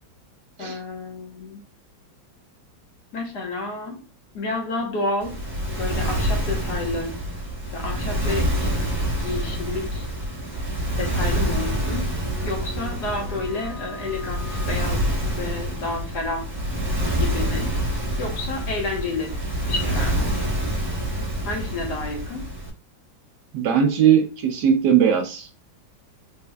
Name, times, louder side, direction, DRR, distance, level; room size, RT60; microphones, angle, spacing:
voice 1, 0.6-1.6 3.1-4.0 4.3-5.4 5.8-7.2 7.7-8.8 9.2-10.1 11.0-12.1 12.4-15.1 15.4-16.5 17.2-17.7 18.2-19.4 19.7-20.3 21.5-22.4, left 3 dB, 60° left, 1 dB, 1.6 m, -30 dB
Waves surf, 5.2-22.7, right 1 dB, 20° right, 2.2 m, -27 dB
sound 1, 11.1-16.9, equal, 45° right, 1.2 m, -42 dB
voice 2, 23.5-25.5, right 8 dB, 65° right, 5 dB, 1.2 m, -19 dB
4.3 x 3.5 x 2.2 m, 0.36 s
omnidirectional pair, 2.1 m